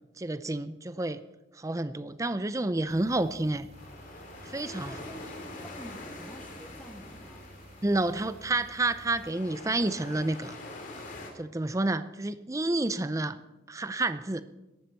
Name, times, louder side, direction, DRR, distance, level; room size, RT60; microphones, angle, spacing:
voice 1, 0.2-1.2 1.6-3.7 4.4-4.9 7.8-10.6 11.3-13.4 13.7-14.4, right 2 dB, 15° right, 13 dB, 0.5 m, -29 dB
sound 1, 2.9-9.3, right 2 dB, 35° right, 0.9 m, -53 dB
sound 2, 3.7-11.3, left 2 dB, 45° left, 2.6 m, -45 dB
voice 2, 4.6-7.5, equal, 5° left, 3 dB, 1.8 m, -48 dB
18.0 x 13.5 x 4.5 m, 1.0 s
head